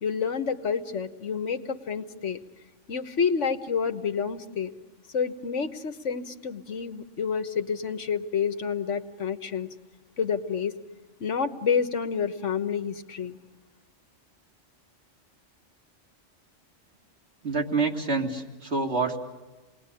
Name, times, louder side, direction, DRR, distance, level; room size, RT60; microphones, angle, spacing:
voice 1, 0.0-2.4 2.9-4.7 5.1-9.7 10.2-10.7 11.2-13.4, left 6 dB, 80° left, 8 dB, 1.6 m, -29 dB
voice 2, 17.4-19.2, right 3 dB, 60° right, 1 dB, 2.8 m, -27 dB
28.5 x 20.5 x 9.9 m, 1.2 s
omnidirectional pair, 1.2 m